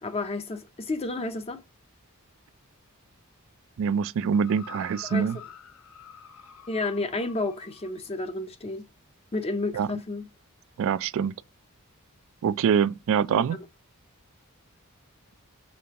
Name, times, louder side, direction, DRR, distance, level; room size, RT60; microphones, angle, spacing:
voice 1, 0.0-1.6 5.1-5.4 6.7-8.8 9.3-10.3 13.3-13.4, left 2 dB, 30° left, 0.6 m, -31 dB
voice 2, 3.8-5.4 9.7-9.9 10.8-11.3 12.4-13.6, right 7 dB, 65° right, 0.3 m, -24 dB
sound 1, 4.3-8.0 8.8-8.9, left 7 dB, 75° left, 0.6 m, -47 dB
5.3 x 3.3 x 2.8 m
head